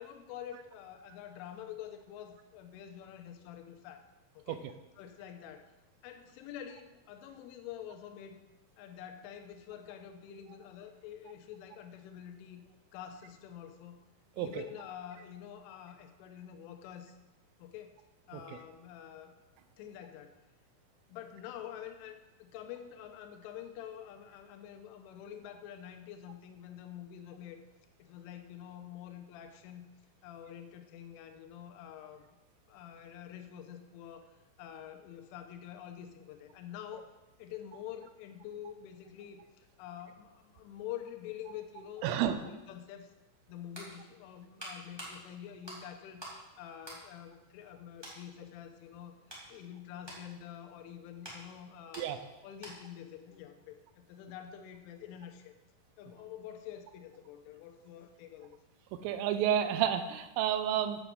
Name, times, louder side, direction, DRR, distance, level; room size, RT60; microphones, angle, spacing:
voice 1, 0.0-4.0 4.3-4.7 5.0-5.7 6.0-8.4 8.8-12.6 12.9-14.0 14.4-17.2 17.6-18.0 18.3-19.3 19.8-20.4 21.1-27.6 28.0-29.9 30.2-32.3 32.7-34.3 34.6-37.1 37.4-43.1 43.5-52.1 52.4-55.5 56.0-58.6, left 10 dB, 85° left, 6 dB, 3.2 m, -47 dB
voice 2, 42.0-42.4 52.0-52.2 59.0-61.0, right 10 dB, 85° right, 10 dB, 3.2 m, -30 dB
sound 1, 43.4-46.4 46.8-47.7 48.0-48.2 48.8-53.0 53.3-53.5, right 1 dB, 30° right, 0.4 m, -49 dB
8.3 x 7.0 x 7.7 m, 1.0 s
omnidirectional pair, 5.9 m